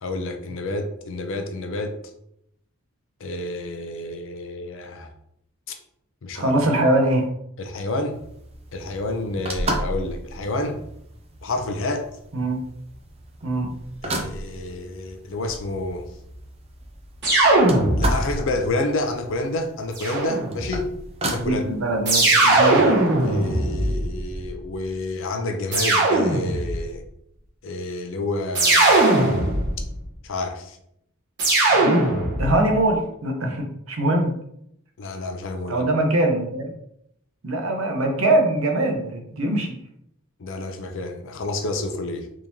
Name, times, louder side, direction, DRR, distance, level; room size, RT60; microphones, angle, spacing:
voice 1, 0.0-1.9 3.2-5.1 6.2-6.5 7.6-8.2 8.7-10.8 11.4-12.1 14.0-16.1 18.0-20.9 21.2-21.6 22.5-22.9 23.2-27.0 27.6-29.0 30.2-30.8 35.0-35.9 40.4-42.3, left 2 dB, 60° left, 5 dB, 0.5 m, -29 dB
voice 2, 6.3-7.3 12.3-12.6 13.4-13.7 21.4-22.8 31.7-32.1 32.4-34.4 35.7-36.6 37.4-39.7, right 1 dB, 65° right, 3 dB, 0.7 m, -22 dB
sound 1, 8.1-23.4, right 2 dB, 25° right, 0.4 m, -35 dB
sound 2, 17.2-18.4 19.9-20.8 22.0-24.4 25.7-26.8 28.5-29.9 31.4-32.6, right 2 dB, 50° right, 1.3 m, -19 dB
3.6 x 3.0 x 2.7 m, 0.75 s
head